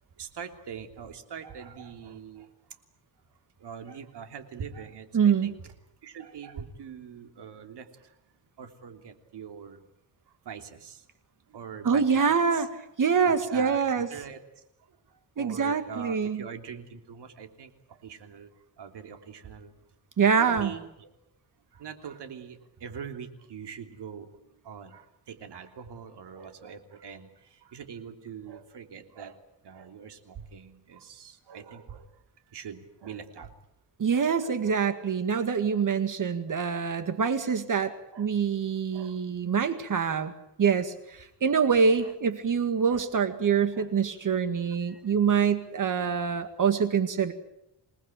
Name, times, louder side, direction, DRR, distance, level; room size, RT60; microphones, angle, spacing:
voice 1, 0.2-2.5 3.6-5.7 6.0-8.1 8.6-9.8 10.4-11.0 11.5-12.7 13.3-14.4 15.4-18.5 18.8-19.7 20.4-21.1 21.7-29.4 29.6-32.1 32.5-33.5 34.1-34.8 35.6-35.8 36.5-36.6 38.1-38.3 38.9-39.2 42.0-42.1 42.9-43.0 43.7-43.9 44.9-45.0, right 7 dB, 75° right, 6 dB, 3.2 m, -43 dB
voice 2, 5.1-5.5 11.8-12.7 13.0-14.1 15.4-16.4 20.2-20.7 34.0-37.9 38.2-40.3 40.6-47.3, right 6 dB, 50° right, 9 dB, 2.0 m, -25 dB
27.5 x 19.5 x 9.1 m, 0.84 s
wide cardioid pair, 140°, 41 cm